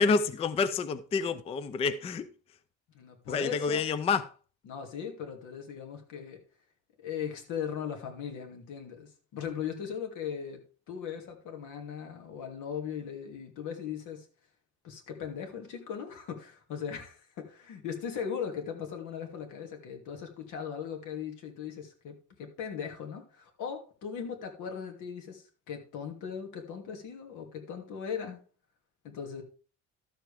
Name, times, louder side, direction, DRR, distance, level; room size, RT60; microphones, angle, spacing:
voice 1, 0.0-2.3 3.3-4.3, left 5 dB, 20° left, 0.4 m, -28 dB
voice 2, 2.9-4.1 4.6-6.4 7.0-10.6 10.9-14.3 14.8-28.4 29.0-29.4, left 7 dB, 75° left, 2.6 m, -38 dB
12.5 x 7.4 x 3.4 m
cardioid pair, 165°, 31 cm